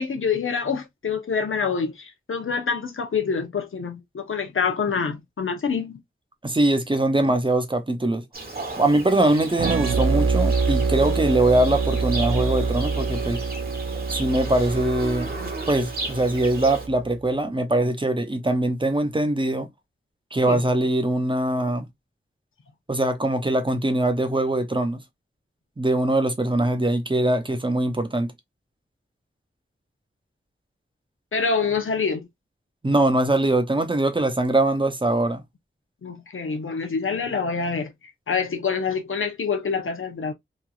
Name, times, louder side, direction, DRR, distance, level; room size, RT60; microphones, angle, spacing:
voice 1, 0.0-6.0 20.5-20.6 31.3-32.3 36.0-37.9 38.3-40.3, left 5 dB, 90° left, 0.7 m, -26 dB
voice 2, 6.4-8.2 8.8-13.4 14.1-15.3 15.7-19.7 20.3-21.9 22.9-25.0 25.8-28.3 32.8-35.4, right 1 dB, 25° right, 0.7 m, -22 dB
Livestock farm animals working animals, 8.3-16.9, right 2 dB, 50° right, 1.1 m, -35 dB
sound 1, 9.6-17.1, right 4 dB, 85° right, 0.4 m, -26 dB
3.0 x 2.5 x 2.3 m
wide cardioid pair, 65°, 20 cm